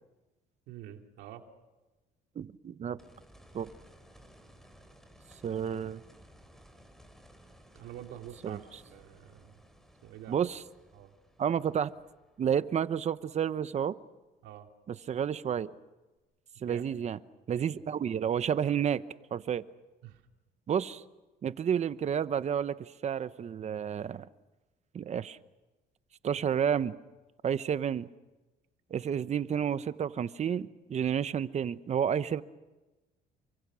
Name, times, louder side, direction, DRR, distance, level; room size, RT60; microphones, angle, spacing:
voice 1, 0.7-1.5 7.7-9.6 10.0-10.5 10.9-11.1 14.4-14.7 16.6-16.8 17.6-17.7 20.0-20.2, right 11 dB, 85° right, 4 dB, 2.6 m, -47 dB
voice 2, 2.4-3.0 3.5-3.7 5.4-6.0 8.4-8.6 10.3-10.6 11.4-11.9 12.4-13.9 14.9-15.7 16.6-17.2 17.5-19.0 19.3-19.7 20.7-21.0 21.4-24.3 24.9-25.4 26.2-27.0 27.4-28.1 28.9-32.4, right 8 dB, 40° right, 14 dB, 1.0 m, -30 dB
sound 1, 3.0-13.9 16.2-16.3, equal, ahead, 4.0 m, -58 dB
28.5 x 25.0 x 6.3 m, 1.1 s
cardioid pair, 110°, 17 cm